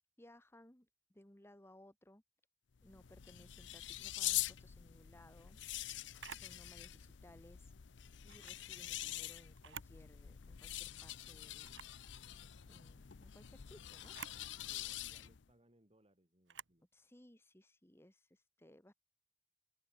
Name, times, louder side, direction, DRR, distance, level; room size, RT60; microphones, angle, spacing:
voice 1, 0.2-2.2 2.8-5.6 6.3-7.7 8.2-11.8 12.7-14.2 16.9-18.9, left 1 dB, 15° left, 1.8 m, -62 dB
sound 1, 2.7-15.5, left 14 dB, 70° left, 0.6 m, -45 dB
Camera, 6.2-6.5 8.2-8.6 9.5-10.0 10.4-10.5 11.6-12.0 14.0-14.4 16.5-16.8, right 8 dB, 75° right, 1.3 m, -51 dB
voice 2, 14.5-16.9, right 1 dB, 30° right, 5.7 m, -69 dB
open air
head